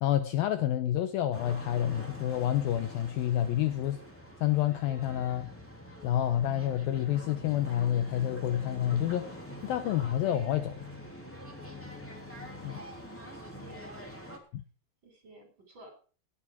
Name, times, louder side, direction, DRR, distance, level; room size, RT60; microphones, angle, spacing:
voice 1, 0.0-4.0 4.4-5.5 6.0-9.3 9.6-10.7 12.6-12.7 14.5-14.6, left 12 dB, 80° left, 10 dB, 2.3 m, -28 dB
sound 1, 1.3-14.4, equal, 5° left, 2.1 m, -45 dB
voice 2, 11.6-12.1 12.6-14.1 15.0-16.0, right 1 dB, 30° right, 4 dB, 4.7 m, -54 dB
19.0 x 8.6 x 4.8 m, 0.40 s
omnidirectional pair, 4.8 m